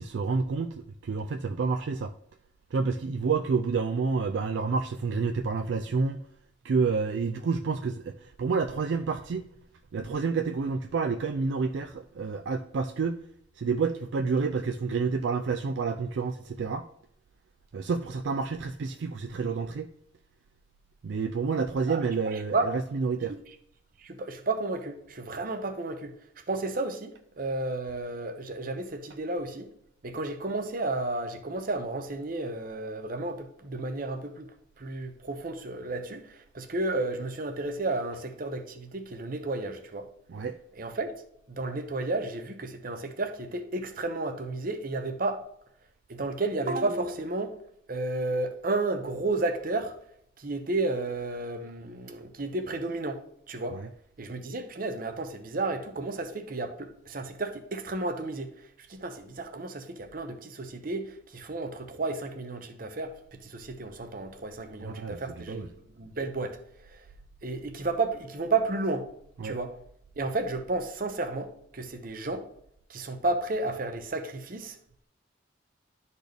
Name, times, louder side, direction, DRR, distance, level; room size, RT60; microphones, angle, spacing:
voice 1, 0.0-2.1 2.7-6.2 6.6-9.5 9.9-13.2 13.6-16.9 17.7-19.9 21.0-23.3 40.3-40.6 53.7-53.9 64.8-65.7 69.4-69.6, right 4 dB, 65° right, 0.4 m, -29 dB
voice 2, 21.9-22.7 24.0-26.1 26.5-29.7 30.0-34.5 34.8-40.1 40.8-41.1 41.5-45.4 46.1-47.5 47.9-49.9 50.4-53.2 53.5-53.8 54.2-58.5 58.9-65.7 65.9-66.6 66.9-67.1 67.4-69.1 69.4-69.8 70.2-72.5 72.9-74.8, right 2 dB, 45° right, 0.8 m, -32 dB
12.0 x 4.1 x 3.4 m
head